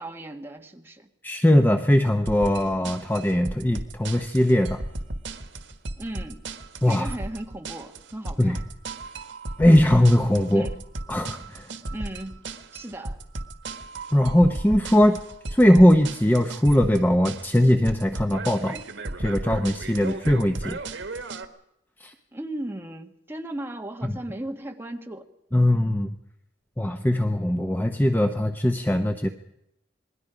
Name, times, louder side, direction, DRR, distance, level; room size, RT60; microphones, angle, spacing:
voice 1, 0.0-1.1 6.0-6.4 6.8-8.7 10.5-10.8 11.9-12.4 12.7-13.2 22.3-25.2, right 1 dB, 15° right, 3 dB, 1.7 m, -36 dB
voice 2, 1.2-4.8 6.8-7.1 8.4-8.6 9.6-10.7 11.1-11.7 14.1-15.2 15.5-18.8 19.2-20.8 22.0-22.1 24.0-24.1 25.5-26.1 26.8-29.3, left 1 dB, 10° left, 6 dB, 0.8 m, -20 dB
sound 1, 2.3-21.5, right 2 dB, 80° right, 1.6 m, -35 dB
27.5 x 20.5 x 5.1 m, 0.84 s
head